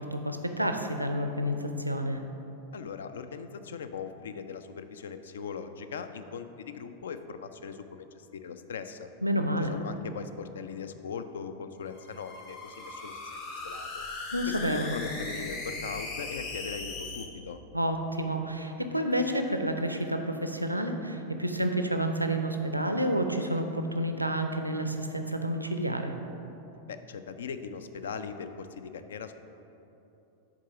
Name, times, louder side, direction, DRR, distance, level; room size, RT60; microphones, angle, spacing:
voice 1, 0.0-2.2 9.2-9.7 14.3-14.9 17.7-26.1, equal, 85° right, 6 dB, 0.4 m, -29 dB
voice 2, 2.7-9.1 9.6-14.1 14.5-17.6 25.3-25.4 26.9-29.3, left 6 dB, 65° left, 10 dB, 0.4 m, -40 dB
sound 1, 11.8-17.2, left 2 dB, 45° left, 1.0 m, -39 dB
7.4 x 3.8 x 5.9 m, 3.0 s
figure-of-eight pair, 90°, 0 cm